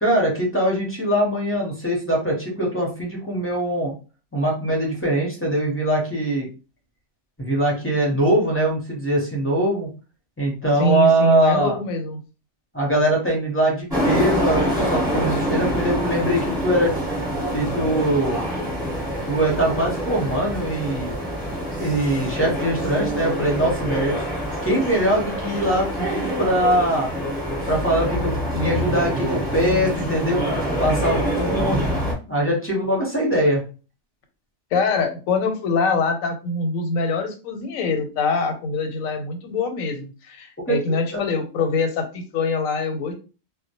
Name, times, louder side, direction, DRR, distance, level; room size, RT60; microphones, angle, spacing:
voice 1, 0.0-3.9 4.3-6.5 7.4-9.9 10.4-11.8 12.7-16.9 17.5-18.4 19.3-21.1 21.8-24.2 24.6-27.1 27.7-30.4 30.8-32.0 32.3-33.6 40.7-40.8 41.1-41.2, right 1 dB, 15° left, -2 dB, 0.4 m, -22 dB
voice 2, 10.7-12.2 34.7-43.1, left 3 dB, 90° left, 6 dB, 1.0 m, -24 dB
sound 1, 13.9-32.1, equal, 5° right, 0.9 m, -26 dB
2.1 x 2.0 x 2.8 m, 0.33 s
omnidirectional pair, 1.4 m